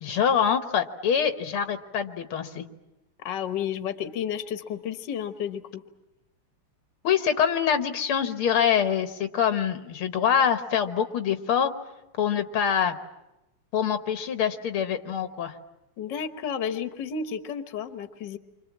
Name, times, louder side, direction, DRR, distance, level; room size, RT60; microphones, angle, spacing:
voice 1, 0.0-2.7 7.0-11.7 12.2-13.0 13.7-15.5, left 8 dB, 90° left, 8 dB, 2.2 m, -25 dB
voice 2, 3.2-5.8 16.0-18.4, left 8 dB, 60° left, 9 dB, 1.8 m, -32 dB
29.0 x 25.0 x 7.4 m, 0.94 s
omnidirectional pair, 2.3 m